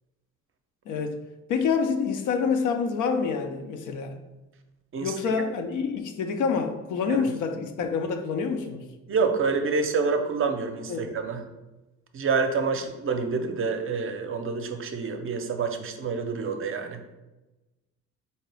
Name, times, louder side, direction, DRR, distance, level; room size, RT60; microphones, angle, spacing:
voice 1, 0.9-1.2 1.5-4.2 5.0-8.8 10.9-11.0, left 5 dB, 80° left, 6 dB, 0.6 m, -27 dB
voice 2, 9.1-11.4 12.1-17.2, right 4 dB, 45° right, 6 dB, 0.5 m, -27 dB
3.7 x 2.8 x 3.3 m, 1.1 s
cardioid pair, 90°, 30 cm